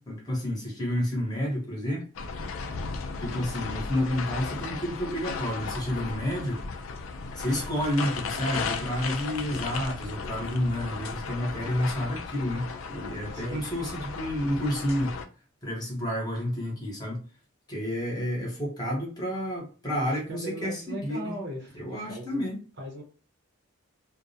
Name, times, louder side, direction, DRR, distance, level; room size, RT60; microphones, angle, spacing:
voice 1, 0.0-2.1 3.2-6.6 7.4-15.2 15.6-17.2 17.7-21.3 21.7-22.6, equal, 20° left, 0.8 m, -30 dB
sound 1, 2.1-15.2, left 4 dB, 70° left, 0.4 m, -36 dB
voice 2, 13.3-13.7 19.9-22.5 22.8-23.0, right 1 dB, 50° right, 0.8 m, -38 dB
2.3 x 2.1 x 2.7 m
head